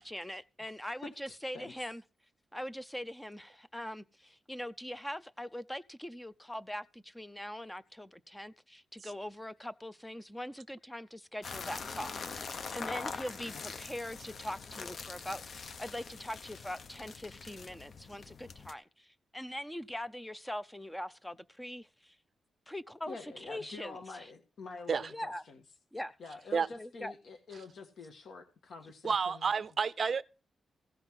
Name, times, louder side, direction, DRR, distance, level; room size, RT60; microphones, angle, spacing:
voice 1, 0.0-2.0 2.5-22.2 22.7-24.3 25.1-25.4 25.9-26.2 26.8-27.1, left 1 dB, 5° left, 0.5 m, -42 dB
voice 2, 1.3-1.7 13.5-13.6 23.1-25.6 26.2-29.5, left 4 dB, 65° left, 1.4 m, -47 dB
sound 1, 11.4-18.7, left 5 dB, 45° left, 0.7 m, -43 dB
voice 3, 29.0-30.2, right 5 dB, 40° right, 0.6 m, -30 dB
16.0 x 5.8 x 6.3 m
wide cardioid pair, 150°, 0 cm